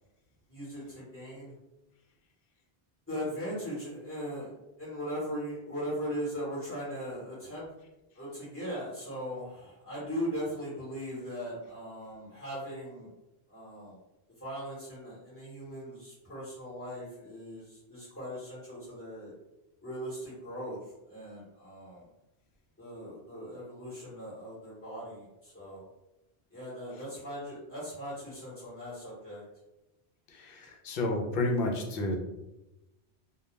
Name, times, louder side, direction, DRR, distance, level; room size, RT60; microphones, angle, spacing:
voice 1, 0.5-1.5 3.1-4.5 4.8-7.6 8.1-13.1 13.5-14.0 14.4-19.3 19.8-20.8 21.1-22.0 22.8-25.8 26.5-29.4, equal, 15° left, -8 dB, 0.9 m, -39 dB
voice 2, 30.3-32.2, left 2 dB, 65° left, 2 dB, 0.7 m, -31 dB
2.2 x 2.1 x 3.0 m, 0.96 s
omnidirectional pair, 1.1 m